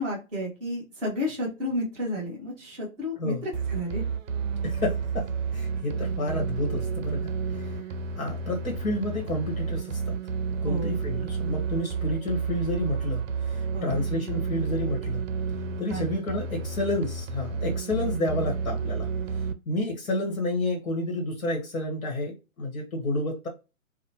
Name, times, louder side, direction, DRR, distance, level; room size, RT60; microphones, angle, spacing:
voice 1, 0.0-4.0 10.6-11.0 13.7-14.0 15.9-16.4, left 1 dB, ahead, 0.4 m, -32 dB
sound 1, 3.5-19.5, right 5 dB, 65° right, 0.5 m, -31 dB
voice 2, 4.6-7.8 8.1-10.1 10.6-15.2 15.8-19.1 19.7-23.5, left 1 dB, 75° left, 1.1 m, -30 dB
3.0 x 2.1 x 2.7 m
hypercardioid pair, 145°, 41 cm